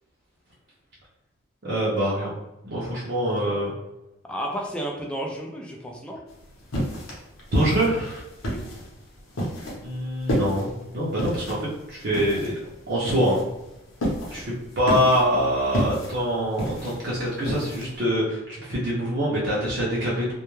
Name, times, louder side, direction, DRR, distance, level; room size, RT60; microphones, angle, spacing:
voice 1, 1.6-2.3 2.6-3.7 7.5-8.2 9.8-12.5 12.9-13.4 14.3-20.3, equal, 55° right, -7 dB, 0.6 m, -25 dB
voice 2, 3.2-3.6 4.3-6.2 8.4-8.6, right 1 dB, 5° left, -1 dB, 0.3 m, -32 dB
sound 1, 6.3-18.0, equal, 90° left, 0.8 m, -31 dB
2.2 x 2.1 x 3.0 m, 0.95 s
head